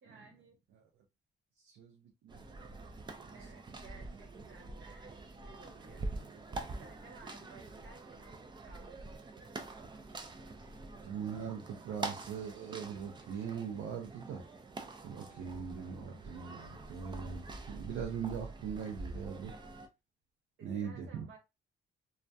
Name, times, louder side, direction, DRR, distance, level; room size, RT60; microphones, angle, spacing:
voice 1, 0.0-0.6 3.3-6.1 6.5-9.1 20.6-21.4, right 4 dB, 70° right, 1.1 m, -57 dB
voice 2, 1.6-2.8 3.2-3.4 11.0-14.4 15.0-19.5 20.6-21.3, right 7 dB, 85° right, 0.5 m, -41 dB
sound 1, 2.3-19.9, right 3 dB, 25° right, 0.4 m, -46 dB
2.3 x 2.1 x 2.6 m
cardioid pair, 90°, 20 cm